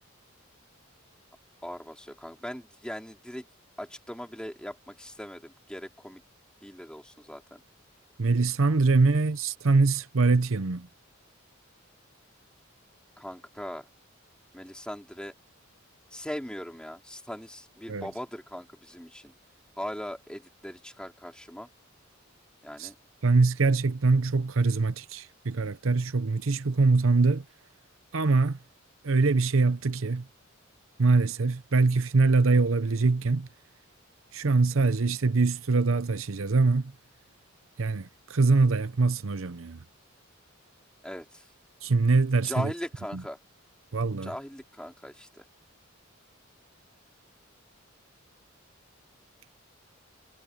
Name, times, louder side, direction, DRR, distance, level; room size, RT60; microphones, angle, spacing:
voice 1, 1.6-3.5 3.8-6.2 6.6-7.6 8.8-8.9 13.2-13.9 14.5-15.3 16.1-19.3 19.8-21.7 22.6-22.9 41.0-41.4 42.4-43.4 44.2-45.4, equal, 5° left, 4.2 m, -39 dB
voice 2, 8.2-10.9 17.9-18.1 22.8-22.9 23.2-27.4 28.1-28.6 29.0-30.2 31.0-33.5 34.3-36.9 37.8-39.8 41.8-42.7 43.1-43.2 43.9-44.3, right 3 dB, 75° right, 0.8 m, -23 dB
head